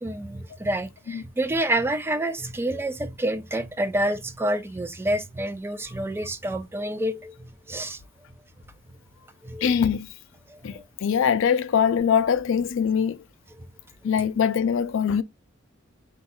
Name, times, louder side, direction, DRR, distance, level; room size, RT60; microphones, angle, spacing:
voice 1, 0.0-8.0 9.4-9.7 10.5-10.8, right 1 dB, 10° right, 0.3 m, -28 dB
voice 2, 9.6-10.1 10.6-13.2 14.0-15.2, left 7 dB, 65° left, 0.4 m, -22 dB
4.0 x 2.3 x 4.2 m
head